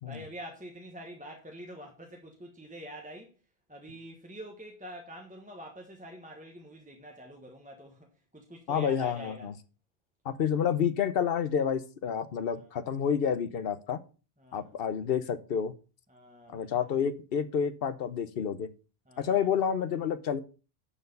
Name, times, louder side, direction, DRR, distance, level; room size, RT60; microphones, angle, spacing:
voice 1, 0.1-3.4 3.7-9.5 12.4-12.7 14.4-14.7 16.1-16.9 19.1-19.4, equal, 10° right, 1.2 m, -46 dB
voice 2, 8.7-9.5 10.2-14.0 14.5-15.7 16.5-18.7 19.2-20.4, left 7 dB, 65° left, 1.0 m, -29 dB
10.0 x 4.7 x 5.3 m
omnidirectional pair, 1.1 m